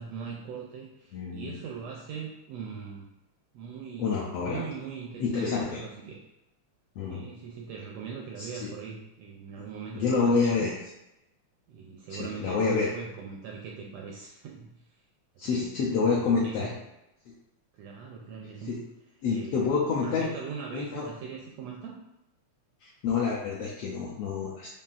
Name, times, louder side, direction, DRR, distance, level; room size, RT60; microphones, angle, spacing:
voice 1, 0.0-3.1 3.5-6.2 7.1-10.7 11.7-14.8 15.4-16.7 17.7-18.8 19.3-19.7 20.0-21.9, right 6 dB, 80° right, -1 dB, 1.4 m, -40 dB
voice 2, 1.1-1.6 4.0-4.6 5.2-5.8 7.0-7.2 8.4-8.7 9.9-10.7 12.1-12.9 15.4-16.7 18.7-18.8 19.2-20.3 20.7-21.0 22.8-24.7, left 5 dB, 80° left, -4 dB, 1.4 m, -28 dB
7.1 x 2.7 x 2.5 m, 0.90 s
omnidirectional pair, 3.4 m